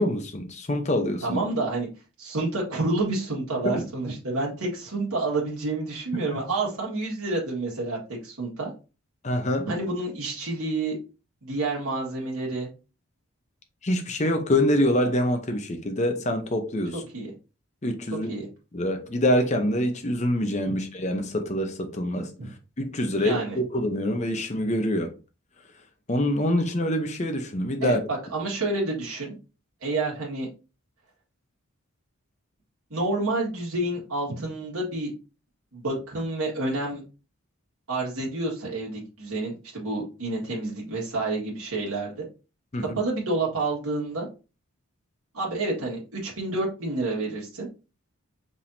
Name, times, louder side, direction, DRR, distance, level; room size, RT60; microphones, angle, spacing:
voice 1, 0.0-1.4 3.6-3.8 9.2-9.7 13.8-17.0 17.8-18.3 18.7-22.3 22.8-25.1 26.1-28.0 42.7-43.0, left 1 dB, 30° left, 0.7 m, -25 dB
voice 2, 1.2-1.9 2.2-8.7 9.7-11.0 11.4-12.7 17.1-17.3 18.3-18.5 20.6-20.8 22.4-22.5 23.2-23.6 27.8-29.4 29.8-30.5 32.9-35.1 35.7-37.0 37.9-42.3 42.8-44.3 45.3-47.7, right 2 dB, 90° right, 1.7 m, -29 dB
5.3 x 3.5 x 2.7 m
head